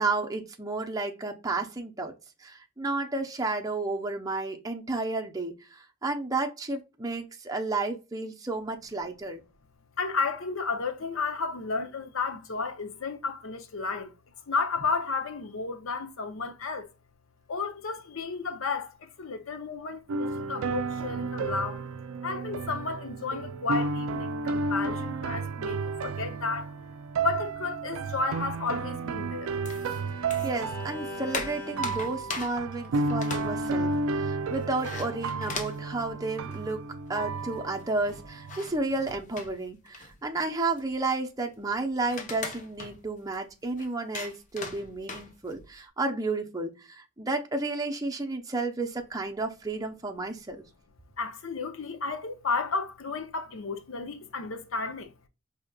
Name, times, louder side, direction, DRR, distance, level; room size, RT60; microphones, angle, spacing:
voice 1, 0.0-2.1 2.4-9.4 30.4-36.8 37.1-50.6, right 3 dB, 15° right, 0.6 m, -32 dB
voice 2, 10.0-14.1 14.5-16.9 17.5-21.8 22.2-26.7 27.2-29.6 51.2-55.1, left 4 dB, 75° left, 0.7 m, -32 dB
sound 1, 20.1-38.7, right 3 dB, 75° right, 0.4 m, -32 dB
Bowed string instrument, 28.4-32.6, equal, 5° left, 1.6 m, -43 dB
sound 2, 29.7-30.7 31.0-36.9 37.2-37.3 37.4-45.8, left 4 dB, 35° left, 0.7 m, -41 dB
4.9 x 2.8 x 2.3 m
head